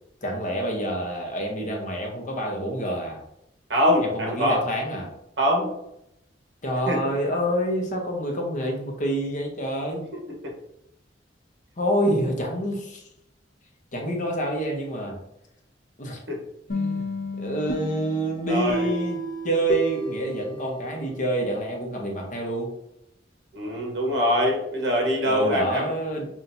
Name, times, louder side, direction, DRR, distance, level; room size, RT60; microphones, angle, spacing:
voice 1, 0.2-3.2 4.0-5.1 6.6-10.1 11.8-13.0 13.9-15.2 16.0-16.2 16.7-19.2 19.4-22.7 25.3-26.3, right 1 dB, 45° left, 1 dB, 0.8 m, -27 dB
voice 2, 3.7-4.6 5.4-5.7 6.9-7.0 10.4-10.5 16.3-16.4 18.5-18.9 23.5-25.9, equal, 65° right, -1 dB, 1.1 m, -23 dB
sound 1, 16.7-21.4, equal, 80° left, 1.2 m, -32 dB
5.8 x 2.4 x 2.7 m, 0.79 s
head